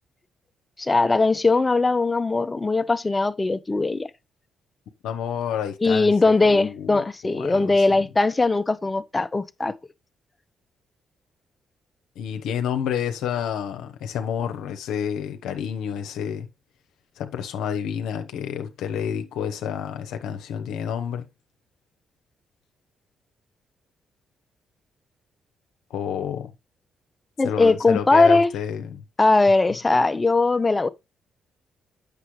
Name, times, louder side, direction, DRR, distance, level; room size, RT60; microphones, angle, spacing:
voice 1, 0.8-4.1 5.8-9.7 27.4-28.5 29.2-30.9, left 3 dB, 25° left, 0.7 m, -20 dB
voice 2, 5.0-6.1 6.4-7.1 7.3-7.7 12.2-16.5 17.2-21.3 25.9-26.5 27.4-29.0, left 8 dB, 80° left, 0.8 m, -29 dB
8.3 x 6.7 x 3.1 m
supercardioid pair, 55°, 0 cm